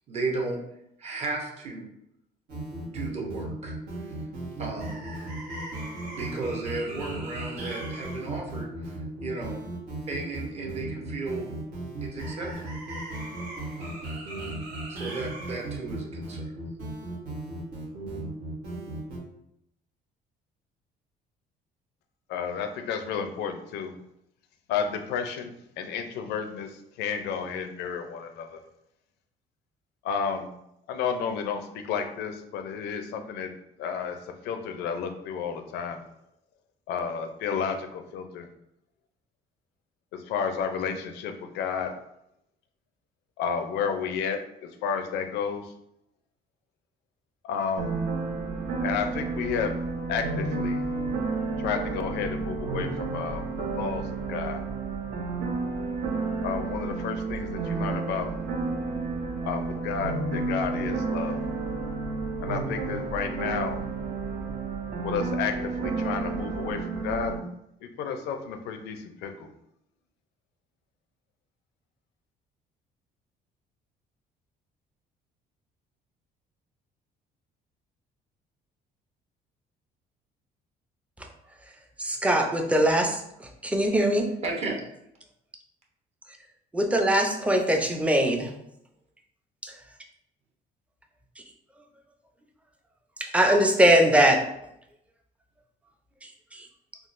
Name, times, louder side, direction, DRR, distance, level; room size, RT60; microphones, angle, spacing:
voice 1, 0.1-0.6 1.0-1.9 2.8-3.7 4.6-5.0 6.1-9.6 10.1-11.5 12.0-12.5 13.8-14.0 14.9-16.5 84.4-84.8, right 3 dB, 40° right, -1 dB, 0.9 m, -34 dB
sound 1, 2.5-19.2, right 2 dB, 90° right, 1.2 m, -36 dB
voice 2, 22.3-24.0 24.7-28.6 30.0-30.5 30.9-33.5 33.8-34.2 34.4-36.0 36.9-38.5 40.1-41.9 43.4-45.7 47.4-48.0 48.8-49.7 50.1-50.9 51.6-54.6 56.4-58.3 59.4-61.4 62.4-63.8 65.0-67.4 67.8-69.5, left 6 dB, 80° left, 6 dB, 0.5 m, -31 dB
sound 2, 47.8-67.4, right 3 dB, 65° right, 0.7 m, -31 dB
voice 3, 82.0-83.2 83.6-84.3 86.7-88.5 89.6-89.7 93.2-94.4 96.5-96.6, right 1 dB, 5° right, 3 dB, 0.4 m, -21 dB
3.6 x 2.3 x 2.5 m, 0.79 s
cardioid pair, 110°, 17 cm